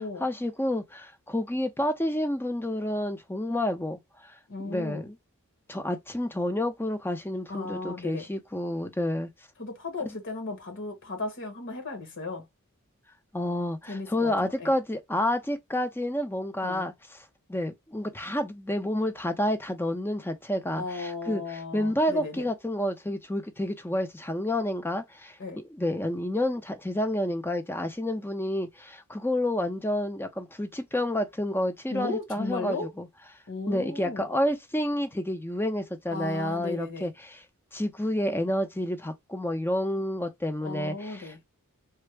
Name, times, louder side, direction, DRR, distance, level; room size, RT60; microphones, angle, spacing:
voice 1, 0.2-4.0 4.6-5.1 5.7-9.3 13.3-16.9 17.5-33.1 33.7-37.4 37.7-41.4, left 1 dB, 10° left, 0.6 m, -29 dB
voice 2, 4.5-5.1 7.5-8.3 9.6-12.5 13.9-14.7 16.6-16.9 20.7-22.5 25.4-25.6 31.9-32.9 33.5-34.3 36.1-37.1 40.6-41.4, left 3 dB, 55° left, 1.1 m, -35 dB
3.4 x 2.1 x 3.2 m
head